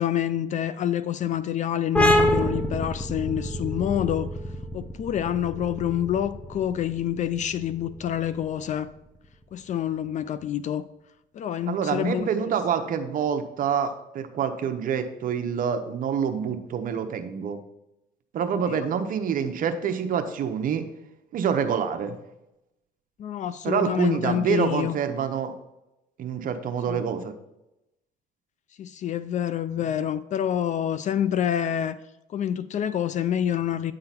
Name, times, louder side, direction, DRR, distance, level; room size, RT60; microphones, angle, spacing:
voice 1, 0.0-4.3 4.7-8.9 9.5-10.8 11.3-12.3 18.7-18.9 23.2-25.0 26.9-27.0 28.8-32.0 32.3-33.9, left 10 dB, 45° left, 15 dB, 0.4 m, -27 dB
sound 1, 1.9-9.2, equal, 5° left, 0.8 m, -27 dB
voice 2, 11.7-17.6 18.3-20.9 21.3-22.1 23.6-25.5 26.2-27.3, right 7 dB, 55° right, 7 dB, 0.8 m, -27 dB
8.9 x 3.8 x 5.8 m, 0.91 s
cardioid pair, 110°, 17 cm